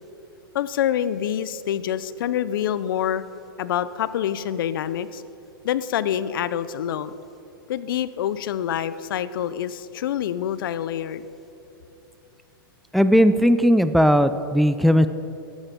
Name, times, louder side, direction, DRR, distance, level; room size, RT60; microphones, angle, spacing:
voice 1, 0.5-3.2 3.6-5.2 5.6-7.1 7.7-11.2, left 10 dB, 70° left, 15 dB, 0.6 m, -26 dB
voice 2, 12.9-15.1, equal, ahead, 11 dB, 0.4 m, -17 dB
13.5 x 11.5 x 5.2 m, 2.8 s
hypercardioid pair, 120°, 12 cm